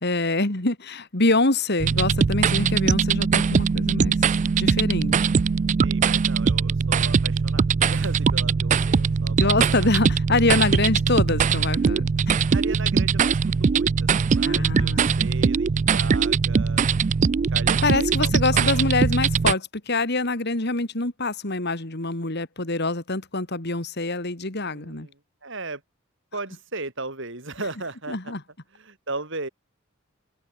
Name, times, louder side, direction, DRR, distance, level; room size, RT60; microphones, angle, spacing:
voice 1, 0.0-4.2 4.6-5.3 9.4-12.4 14.4-15.2 17.8-25.1 28.1-28.4, left 2 dB, 50° left, 2.6 m, -25 dB
sound 1, 1.8-19.5, right 5 dB, 35° right, 0.3 m, -21 dB
voice 2, 5.8-9.9 12.5-16.9 17.5-18.3 18.7-18.9 24.6-25.8 26.3-28.3 28.7-29.5, right 3 dB, 60° right, 5.7 m, -37 dB
head